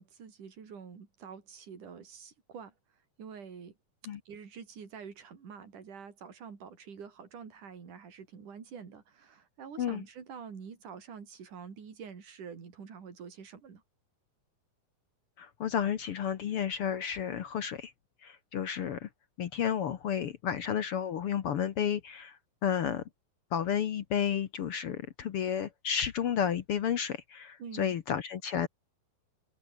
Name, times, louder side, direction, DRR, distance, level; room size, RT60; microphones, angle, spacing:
voice 1, 0.0-2.7 3.2-3.7 4.3-13.8 27.6-27.9, right 6 dB, 55° right, 5.4 m, -47 dB
voice 2, 15.4-17.9 18.2-19.1 19.4-23.0 23.5-28.7, left 8 dB, 70° left, 1.3 m, -32 dB
open air
omnidirectional pair, 4.2 m